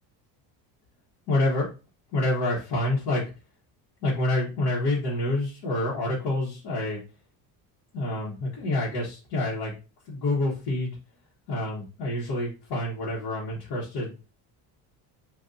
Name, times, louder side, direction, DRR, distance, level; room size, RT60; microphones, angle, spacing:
voice 1, 1.3-1.7 2.1-3.3 4.0-7.0 7.9-9.7 10.0-11.0 11.5-14.1, left 2 dB, 65° left, -6 dB, 1.3 m, -27 dB
3.7 x 2.6 x 2.7 m, 0.31 s
cardioid pair, 150°, 42 cm